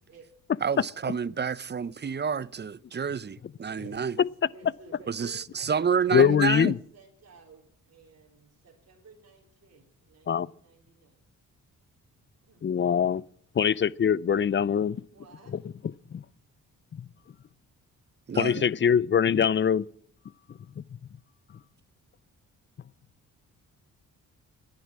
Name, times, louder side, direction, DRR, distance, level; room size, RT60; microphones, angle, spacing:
voice 1, 0.6-4.2 5.1-6.7 18.3-18.6, right 6 dB, 30° right, 0.7 m, -29 dB
voice 2, 3.8-11.2 12.5-12.7 15.1-15.6 19.3-19.7, right 4 dB, 45° right, 3.9 m, -53 dB
voice 3, 6.1-6.8 10.3-10.5 12.6-13.2 13.5-15.0 15.5-15.6 16.1-16.2 16.9-17.1 18.4-19.8 20.8-20.9, left 7 dB, 35° left, 0.5 m, -23 dB
14.0 x 11.0 x 7.4 m
supercardioid pair, 60°, 35 cm